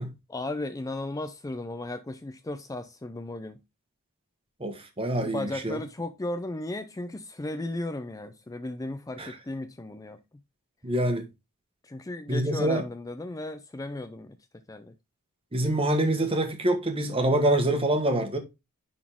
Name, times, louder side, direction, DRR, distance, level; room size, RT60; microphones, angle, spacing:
voice 1, 0.3-3.6 5.2-10.2 11.8-14.4 14.7-14.9, left 2 dB, 15° left, 0.4 m, -35 dB
voice 2, 4.6-5.8 9.2-9.3 10.8-11.3 12.3-12.8 15.5-18.4, right 1 dB, 25° right, 1.4 m, -25 dB
10.5 x 4.2 x 3.6 m
head